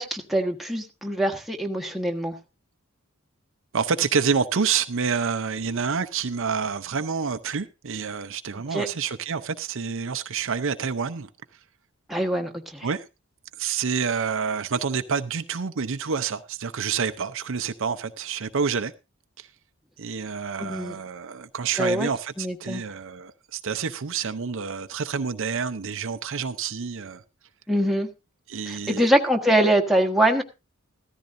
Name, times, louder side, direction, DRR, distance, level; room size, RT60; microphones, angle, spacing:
voice 1, 0.0-2.3 8.7-8.9 12.1-12.9 20.6-20.9 21.8-22.1 22.4-22.8 27.7-28.1 28.7-30.4, right 1 dB, ahead, 1.3 m, -23 dB
voice 2, 3.7-11.3 12.8-13.1 13.6-18.9 19.4-19.5 20.0-27.2 28.5-29.1, right 6 dB, 65° right, 0.7 m, -28 dB
15.5 x 13.5 x 2.6 m
head